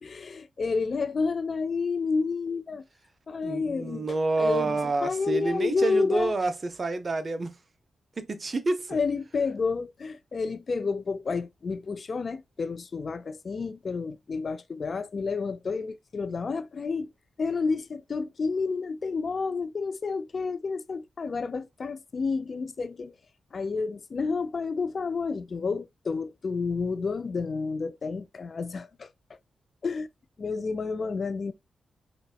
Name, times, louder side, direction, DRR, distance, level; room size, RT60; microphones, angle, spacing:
voice 1, 0.0-2.8 3.3-6.3 8.9-17.1 17.4-23.1 23.5-29.4 29.8-30.1 30.4-31.5, left 4 dB, 50° left, 0.3 m, -30 dB
voice 2, 3.4-7.5 8.2-9.0, right 3 dB, 40° right, 0.5 m, -28 dB
4.0 x 2.1 x 2.2 m
cardioid pair, 75°, 0 cm